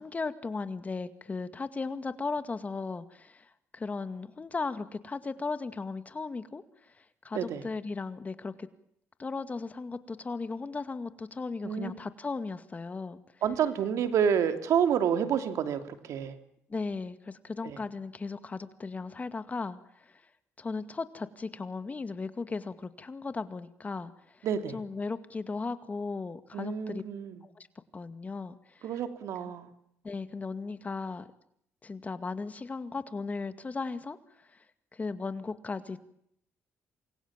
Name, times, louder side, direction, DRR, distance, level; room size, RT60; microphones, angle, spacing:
voice 1, 0.0-8.7 9.2-13.2 16.7-20.2 20.6-24.5 24.7-27.0 27.4-27.7 27.9-29.0 30.0-31.3 31.8-34.6 34.9-36.0, left 4 dB, 30° left, 11 dB, 2.1 m, -36 dB
voice 2, 13.4-16.3 17.6-17.8 24.4-24.8 26.5-27.4 28.8-29.7, right 8 dB, 70° right, 8 dB, 2.9 m, -29 dB
28.0 x 22.5 x 7.5 m, 0.72 s
cardioid pair, 85°, 5 cm